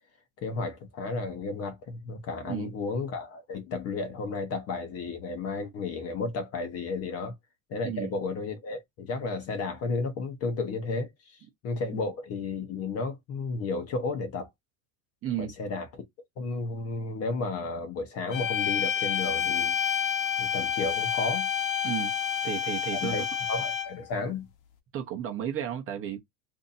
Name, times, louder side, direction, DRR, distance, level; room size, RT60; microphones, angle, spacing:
voice 1, 0.4-7.3 7.7-11.4 11.6-14.5 15.4-16.0 16.4-19.8 20.4-21.5 22.9-24.5, left 3 dB, 30° left, 0.8 m, -33 dB
voice 2, 2.4-2.7 7.8-8.1 15.2-15.5 21.8-22.1 22.4-23.3 24.9-26.2, right 10 dB, 25° right, 0.8 m, -33 dB
sound 1, 18.3-24.1, left 8 dB, 55° left, 1.0 m, -29 dB
2.7 x 2.5 x 4.0 m
supercardioid pair, 140°, 49 cm